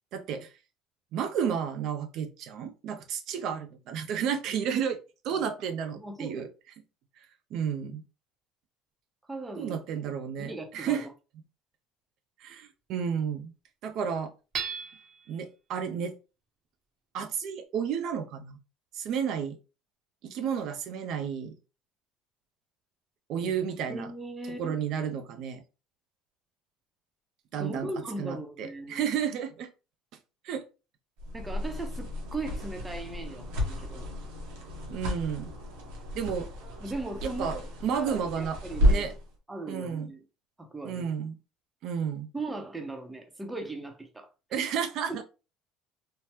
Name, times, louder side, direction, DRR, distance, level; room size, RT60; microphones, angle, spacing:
voice 1, 0.1-0.5 1.1-5.0 5.2-6.5 7.2-8.0 9.6-11.1 12.4-13.5 13.8-14.3 15.3-16.1 17.1-18.6 18.9-19.6 20.2-21.6 23.3-24.1 24.6-25.6 27.5-27.9 28.2-29.7 30.4-30.6 34.9-35.5 36.1-36.5 37.2-38.6 38.9-39.1 39.7-40.1 40.8-41.3 41.8-42.3 44.5-45.2, right 7 dB, 60° right, 0.4 m, -32 dB
voice 2, 5.9-6.5 9.3-9.8 10.4-11.1 23.4-23.5 23.9-24.8 27.6-29.0 31.3-34.1 36.8-39.1 39.5-40.2 40.6-41.1 42.3-44.6, right 2 dB, 10° right, 0.7 m, -38 dB
Hammer / Chink clink, 14.5-15.3, right 6 dB, 45° right, 0.7 m, -35 dB
sound 1, 31.2-39.3, equal, 90° right, 1.0 m, -32 dB
3.3 x 2.0 x 2.8 m
cardioid pair, 120°, 0 cm